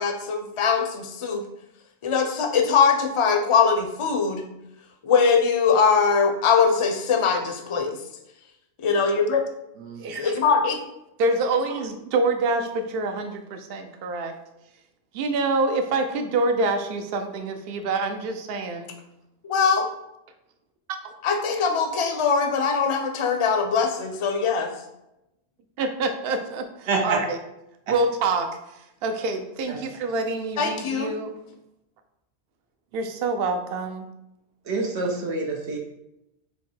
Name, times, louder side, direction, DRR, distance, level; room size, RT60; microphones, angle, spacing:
voice 1, 0.0-1.4 2.0-4.4 5.0-8.0 8.8-9.4 10.2-10.8 19.5-19.9 21.2-24.7 30.6-31.1, left 5 dB, 40° left, 5 dB, 0.5 m, -21 dB
voice 2, 10.0-10.4 11.2-14.3 15.1-18.9 20.9-21.1 25.8-27.4 27.9-31.3 32.9-34.1, right 3 dB, 65° right, 6 dB, 0.8 m, -26 dB
voice 3, 26.9-27.2 29.7-29.8 34.7-35.8, right 3 dB, 85° right, 1 dB, 1.1 m, -26 dB
4.5 x 2.7 x 4.3 m, 0.88 s
omnidirectional pair, 1.1 m